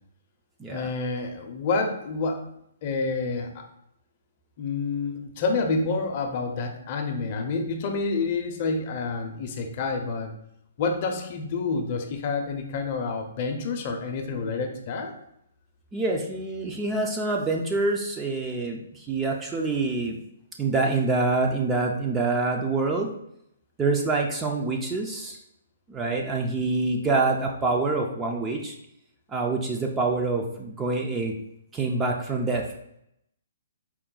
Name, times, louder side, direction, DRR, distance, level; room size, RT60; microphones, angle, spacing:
voice 1, 0.7-2.4 2.8-3.6 4.6-10.3 10.8-15.1, left 4 dB, 35° left, 4 dB, 0.5 m, -28 dB
voice 2, 15.9-20.2 20.6-23.1 23.8-25.4 25.9-28.8 29.3-31.3 31.7-32.7, right 3 dB, 10° right, 1 dB, 0.3 m, -26 dB
4.4 x 2.1 x 3.8 m, 0.77 s
hypercardioid pair, 165°, 0 cm